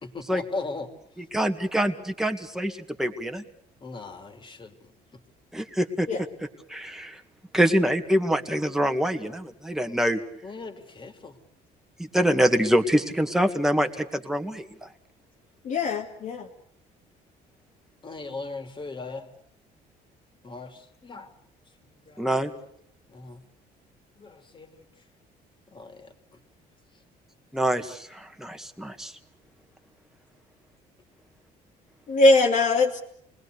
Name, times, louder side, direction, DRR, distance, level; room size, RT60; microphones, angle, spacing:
voice 1, 0.0-0.9 3.8-5.2 10.4-11.4 18.0-19.3 20.4-21.3 21.8-22.4 23.1-23.4 24.2-24.9 25.7-26.4, left 3 dB, 30° left, 6 dB, 3.2 m, -39 dB
voice 2, 1.3-3.4 5.5-6.1 6.7-7.2 7.5-10.2 12.1-14.9 22.2-22.5 27.5-29.1, equal, ahead, 5 dB, 2.1 m, -25 dB
voice 3, 15.6-16.5 32.1-33.0, left 2 dB, 50° left, -2 dB, 2.4 m, -21 dB
29.0 x 21.0 x 6.6 m, 0.67 s
cardioid pair, 110°, 17 cm